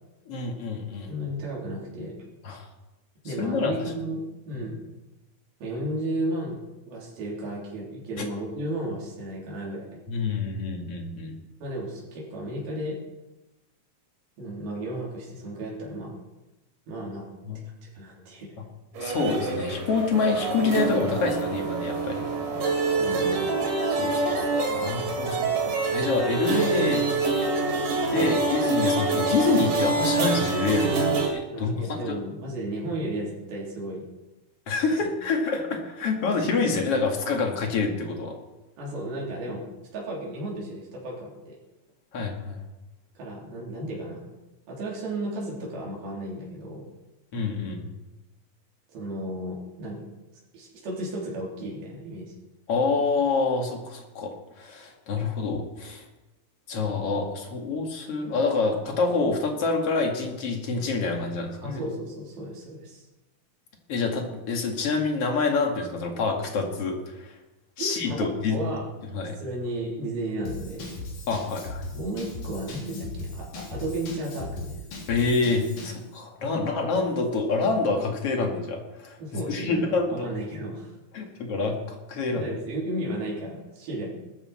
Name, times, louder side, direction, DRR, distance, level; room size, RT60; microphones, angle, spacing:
voice 1, 0.3-1.1 2.4-2.6 3.4-3.7 4.5-4.6 8.2-8.3 10.1-11.4 17.4-17.6 19.0-22.3 23.9-27.5 28.1-31.7 32.1-32.2 34.7-38.4 42.1-42.6 47.3-47.9 52.7-54.3 54.6-56.0 56.7-61.8 63.9-67.3 67.8-68.6 69.1-69.3 71.3-71.8 75.1-80.3 81.1-82.5, left 4 dB, 45° left, 2 dB, 2.6 m, -27 dB
voice 2, 1.1-2.2 3.2-4.8 5.6-10.0 11.6-13.0 14.4-16.2 16.9-17.3 17.8-18.5 22.1-22.7 23.0-23.6 28.1-28.3 31.5-34.0 35.0-35.1 38.8-39.6 39.9-41.6 43.2-44.3 44.7-46.8 48.9-50.0 50.5-52.3 61.6-63.0 67.8-68.9 69.4-71.0 71.9-74.8 76.5-76.7 79.2-80.9 82.3-84.1, right 1 dB, 80° right, -4 dB, 5.5 m, -34 dB
sound 1, 18.9-31.3, right 3 dB, 60° right, 4.0 m, -26 dB
Drum kit / Drum, 70.5-76.0, left 2 dB, 75° left, 5.0 m, -38 dB
19.5 x 13.5 x 4.4 m, 1.0 s
omnidirectional pair, 4.2 m